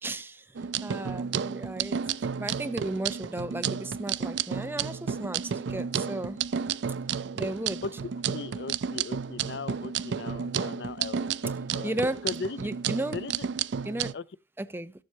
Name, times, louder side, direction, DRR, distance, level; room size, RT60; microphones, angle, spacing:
voice 1, 0.0-6.4 7.3-7.8 11.8-12.2 12.6-13.2 13.8-14.2 14.6-14.9, right 1 dB, 10° right, 0.6 m, -35 dB
sound 1, 0.5-14.1, right 7 dB, 85° right, 0.4 m, -32 dB
voice 2, 7.8-11.9 12.2-12.7 13.1-13.4 14.1-14.3, left 4 dB, 70° left, 0.5 m, -38 dB
13.5 x 7.5 x 2.7 m
head